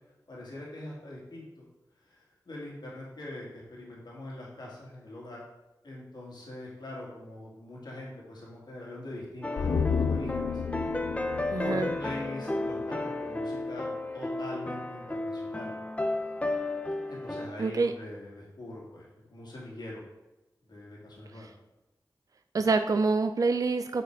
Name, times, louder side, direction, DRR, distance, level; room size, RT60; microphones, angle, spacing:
voice 1, 0.3-1.7 2.0-5.4 5.8-10.6 11.6-15.7 17.1-19.0 19.3-20.0 20.7-21.5, left 1 dB, 70° left, -4 dB, 2.0 m, -42 dB
sound 1, 9.4-17.5, left 2 dB, 15° left, 0.6 m, -33 dB
sound 2, 9.6-13.0 13.3-13.4, left 6 dB, 90° left, 0.4 m, -32 dB
voice 2, 11.5-11.9 17.6-17.9 21.4-21.5 22.5-24.0, right 4 dB, 50° right, 8 dB, 0.4 m, -26 dB
6.6 x 4.2 x 4.6 m, 1.0 s
cardioid pair, 45°, 8 cm